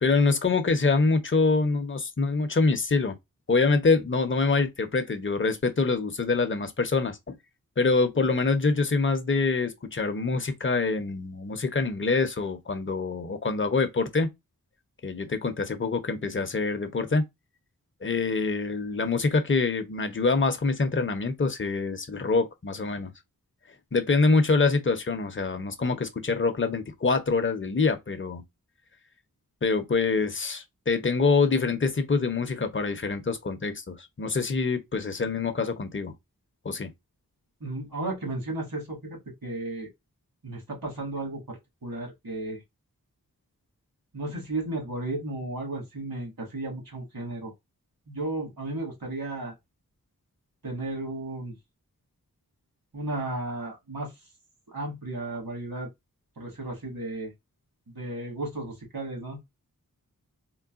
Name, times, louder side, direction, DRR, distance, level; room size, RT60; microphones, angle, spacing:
voice 1, 0.0-3.2 3.5-7.4 7.8-14.3 15.0-17.2 18.0-23.1 23.9-28.4 29.6-36.1 36.6-36.9, left 4 dB, 35° left, 0.6 m, -25 dB
voice 2, 37.6-39.9 40.4-42.6 44.1-47.5 48.1-49.5 50.6-51.5 52.9-54.1 54.7-55.9 56.4-57.3 57.9-59.4, right 2 dB, 70° right, 1.7 m, -34 dB
3.8 x 2.1 x 2.4 m
wide cardioid pair, 45°, 36 cm